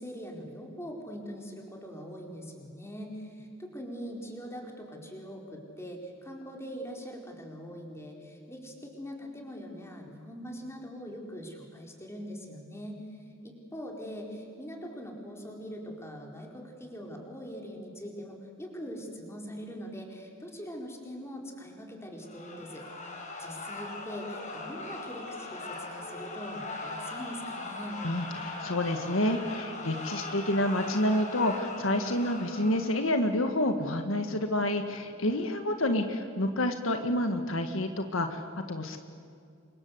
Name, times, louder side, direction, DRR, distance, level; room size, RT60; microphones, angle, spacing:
voice 1, 0.0-28.0, equal, 15° left, 1 dB, 4.5 m, -42 dB
sound 1, 22.2-33.2, left 2 dB, 35° left, 5.3 m, -40 dB
voice 2, 28.0-39.0, left 1 dB, 70° left, 6 dB, 1.7 m, -29 dB
29.5 x 25.0 x 8.0 m, 2.3 s
head